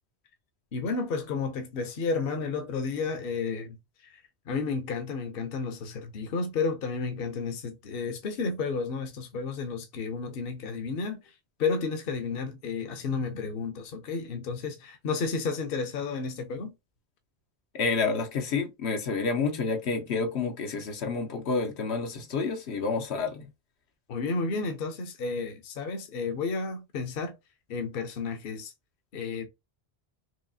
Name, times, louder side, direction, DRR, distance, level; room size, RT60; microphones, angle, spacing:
voice 1, 0.7-3.8 4.0-4.2 4.5-11.2 11.6-16.7 24.1-27.3 27.7-28.7 29.1-29.5, left 4 dB, 65° left, 0.9 m, -32 dB
voice 2, 17.7-23.5, left 4 dB, 85° left, 1.1 m, -29 dB
4.6 x 2.8 x 2.7 m
omnidirectional pair, 1.1 m